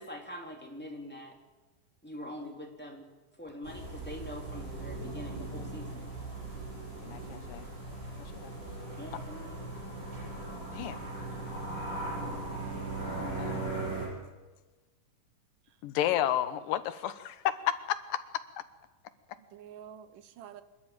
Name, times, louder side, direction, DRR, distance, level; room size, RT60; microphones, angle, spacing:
voice 1, 0.0-1.4 2.0-3.1 3.4-6.1 9.0-9.6, left 1 dB, 5° left, 1 dB, 2.5 m, -44 dB
sound 1, 3.6-14.1, right 2 dB, 30° right, 8.9 m, -39 dB
voice 2, 7.0-7.7 8.2-8.5 10.7-11.0 13.0-13.7 15.8-18.2, left 11 dB, 90° left, 12 dB, 2.7 m, -32 dB
voice 3, 10.7-11.7 19.4-20.6, right 9 dB, 80° right, 12 dB, 2.5 m, -51 dB
26.0 x 12.0 x 9.0 m, 1.2 s
omnidirectional pair, 3.8 m